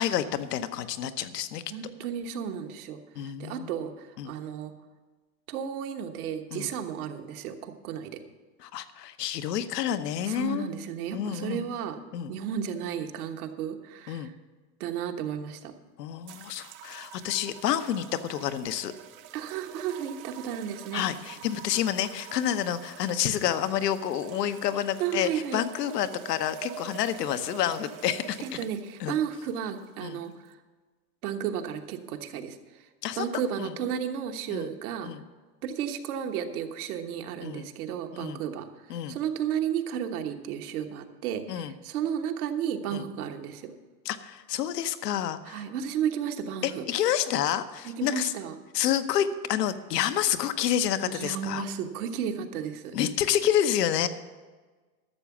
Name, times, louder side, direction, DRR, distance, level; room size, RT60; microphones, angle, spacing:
voice 1, 0.0-1.6 3.2-3.7 4.2-4.3 6.5-6.7 8.6-10.7 11.1-11.7 12.1-12.3 14.1-14.3 16.0-18.9 20.9-28.4 29.0-29.1 30.0-30.2 33.0-33.3 33.6-33.7 34.5-34.7 35.0-35.2 37.4-37.7 38.1-38.4 38.9-39.2 41.5-41.7 42.9-43.1 44.0-45.7 46.6-48.3 48.7-51.6 52.9-54.1, left 10 dB, 85° left, 11 dB, 1.0 m, -29 dB
voice 2, 1.7-4.7 5.5-8.2 10.2-12.0 12.3-14.3 14.8-15.7 19.3-21.1 25.0-25.6 28.4-30.6 31.2-32.6 33.2-35.1 35.6-43.7 45.5-46.9 47.8-48.5 51.1-53.0, right 8 dB, 65° right, 6 dB, 1.4 m, -33 dB
sound 1, 16.3-30.5, right 10 dB, 25° right, 0.4 m, -46 dB
12.5 x 7.0 x 7.2 m, 1.3 s
supercardioid pair, 130°, 47 cm